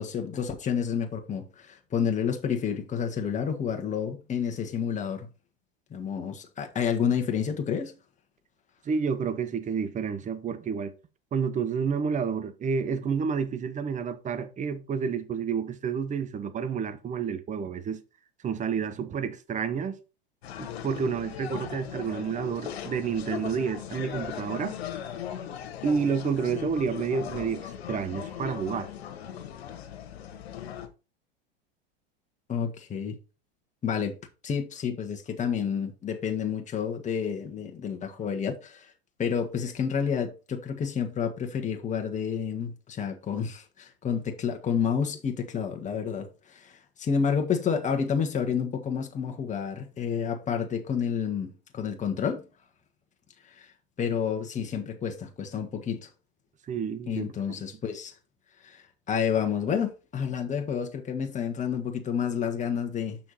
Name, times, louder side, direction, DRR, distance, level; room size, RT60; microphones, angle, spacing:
voice 1, 0.0-5.3 5.9-7.9 32.5-33.2 33.8-34.2 34.4-38.9 39.2-52.4 53.5-53.7 54.0-56.1 57.1-58.1 58.6-63.2, left 7 dB, 25° left, 1.6 m, -29 dB
voice 2, 8.8-10.9 11.3-18.0 18.4-20.0 20.6-24.8 25.8-28.9 56.7-57.3, right 6 dB, 25° right, 1.0 m, -29 dB
sound 1, 20.4-30.9, left 10 dB, 80° left, 1.6 m, -38 dB
6.7 x 5.9 x 4.2 m
hypercardioid pair, 110°, 31 cm